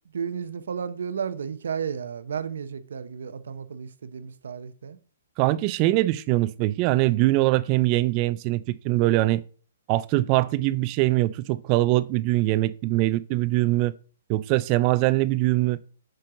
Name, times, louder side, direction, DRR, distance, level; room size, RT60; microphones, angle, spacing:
voice 1, 0.1-5.0, right 7 dB, 75° right, 0.7 m, -33 dB
voice 2, 5.4-9.4 9.9-13.9 14.3-15.8, right 18 dB, 30° right, 0.3 m, -22 dB
7.6 x 4.6 x 3.7 m
hypercardioid pair, 155°, 0 cm